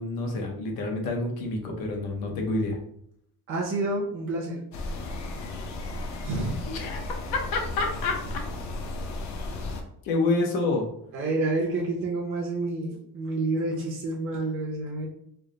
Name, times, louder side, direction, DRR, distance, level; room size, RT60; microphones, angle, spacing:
voice 1, 0.0-2.8 6.7-7.0 7.5-8.2 10.0-10.9, left 2 dB, 90° left, 2 dB, 0.9 m, -28 dB
voice 2, 3.5-4.6 6.2-6.6 11.1-15.1, right 2 dB, 40° right, -2 dB, 0.7 m, -29 dB
sound 1, 4.7-9.8, left 2 dB, 55° left, 0.6 m, -34 dB
3.4 x 2.1 x 3.8 m, 0.72 s
cardioid pair, 145°, 34 cm